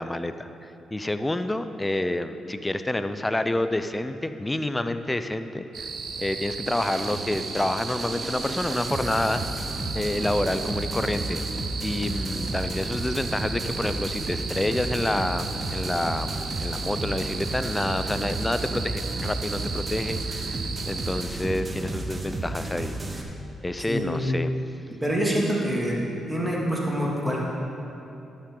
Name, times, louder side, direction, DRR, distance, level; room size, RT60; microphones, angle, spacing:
voice 1, 0.0-5.9 6.2-9.4 9.9-11.4 11.8-23.3 23.6-24.5, left 1 dB, 15° left, 10 dB, 0.5 m, -28 dB
sound 1, 5.7-21.3, right 5 dB, 65° right, 0.8 m, -35 dB
sound 2, 6.7-23.2, right 2 dB, 30° right, 1.1 m, -33 dB
voice 2, 23.9-24.4 25.0-26.0 26.3-27.4, equal, 10° right, -4 dB, 2.5 m, -26 dB
12.5 x 7.4 x 3.9 m, 2.8 s
supercardioid pair, 55°, 0 cm